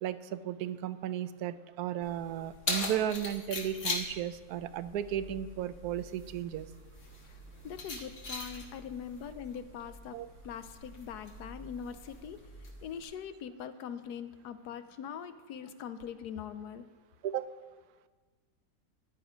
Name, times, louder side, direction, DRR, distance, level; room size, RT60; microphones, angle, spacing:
voice 1, 0.0-6.7 7.9-8.0 10.1-10.3 17.2-17.5, right 10 dB, 70° right, 12 dB, 1.0 m, -35 dB
Keys jangling, 2.0-13.0, left 3 dB, 60° left, 2.1 m, -41 dB
voice 2, 7.6-10.2 10.4-12.4 12.8-16.8, left 8 dB, 80° left, 12 dB, 1.2 m, -42 dB
13.0 x 10.5 x 5.1 m, 1.4 s
omnidirectional pair, 1.7 m